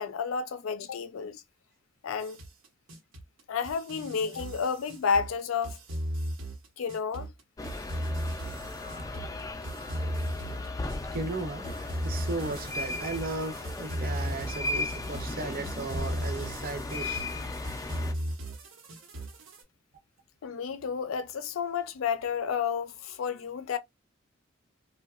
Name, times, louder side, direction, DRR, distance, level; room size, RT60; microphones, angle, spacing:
voice 1, 0.0-1.4 2.0-2.4 3.5-5.8 6.8-7.3 20.4-23.8, left 6 dB, 85° left, 0.4 m, -31 dB
sound 1, 2.2-19.6, equal, 80° right, 0.9 m, -36 dB
sound 2, 7.6-18.1, left 2 dB, 15° left, 0.4 m, -36 dB
voice 2, 11.1-11.6 12.0-17.2, right 3 dB, 45° right, 0.6 m, -35 dB
2.7 x 2.2 x 2.4 m
head